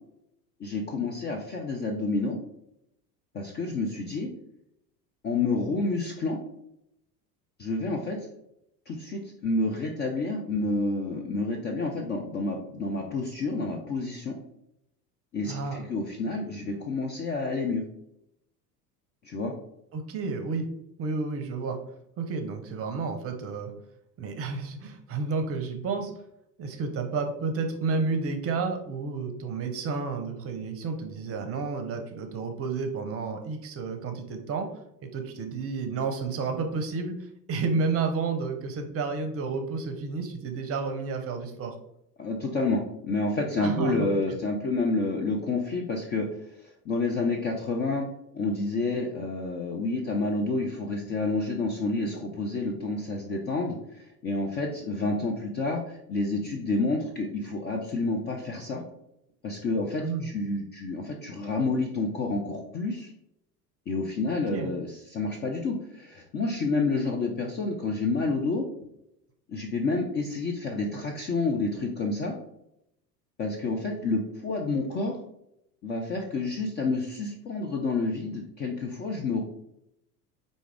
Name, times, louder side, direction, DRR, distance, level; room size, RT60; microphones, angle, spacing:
voice 1, 0.6-2.4 3.3-4.3 5.2-6.4 7.6-8.3 8.9-14.4 15.3-17.8 19.2-19.5 42.2-46.3 46.6-48.1 48.3-58.8 59.4-63.1 63.9-68.7 69.5-72.3 73.4-75.2 75.8-79.4, left 3 dB, 25° left, 1 dB, 0.4 m, -29 dB
voice 2, 15.5-15.8 19.9-20.7 21.0-21.8 22.2-23.7 24.2-26.1 26.6-34.7 35.1-41.8 43.6-44.1 60.0-60.3 64.5-64.7, right 4 dB, 30° right, 5 dB, 0.7 m, -31 dB
4.7 x 2.6 x 3.2 m, 0.80 s
figure-of-eight pair, 75°, 49 cm